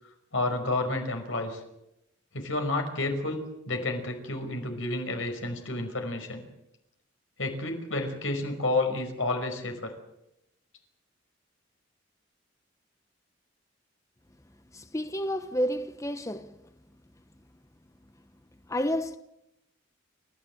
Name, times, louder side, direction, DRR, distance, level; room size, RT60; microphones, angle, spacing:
voice 1, 0.3-1.6 2.3-6.4 7.4-10.0, left 2 dB, 85° left, 5.3 m, -30 dB
voice 2, 14.7-16.5 18.7-19.2, equal, 15° left, 0.9 m, -30 dB
29.5 x 14.5 x 7.9 m
head